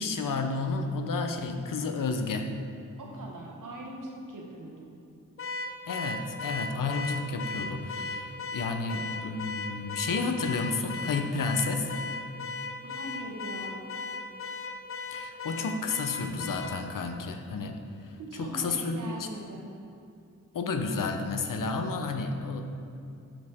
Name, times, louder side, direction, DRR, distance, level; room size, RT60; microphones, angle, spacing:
voice 1, 0.0-2.6 5.9-11.9 15.1-17.8 18.1-19.3 20.5-22.6, left 3 dB, 90° left, 5 dB, 0.8 m, -31 dB
voice 2, 3.0-4.9 12.8-13.9 18.3-19.7, right 1 dB, 75° right, -2 dB, 1.6 m, -41 dB
Car / Alarm, 5.4-16.8, left 3 dB, 45° left, 0.6 m, -37 dB
13.0 x 5.1 x 3.6 m, 2.5 s
wide cardioid pair, 105°, 32 cm